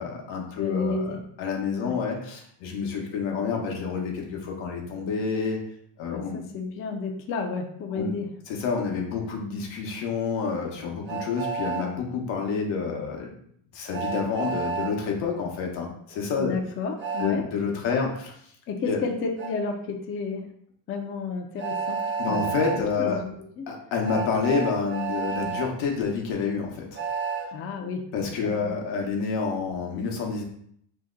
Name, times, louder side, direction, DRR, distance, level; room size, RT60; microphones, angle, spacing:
voice 1, 0.0-5.6 6.0-6.4 7.9-8.1 8.5-13.3 13.7-16.6 17.2-18.1 18.9-19.0 22.2-23.2 23.7-27.0 28.1-30.4, left 5 dB, 85° left, 1 dB, 0.9 m, -28 dB
voice 2, 0.6-1.2 1.8-1.9 6.1-8.3 16.4-17.5 17.9-18.0 18.7-20.5 20.9-22.5 23.0-23.7 27.5-28.8, left 4 dB, 30° left, 3 dB, 0.4 m, -31 dB
Train, 11.1-11.9 13.9-14.9 17.0-17.3 19.4-19.5 21.6-22.8 24.0-25.7 26.9-27.5, right 5 dB, 25° right, 0.5 m, -30 dB
2.8 x 2.1 x 3.6 m, 0.67 s
cardioid pair, 110°, 45 cm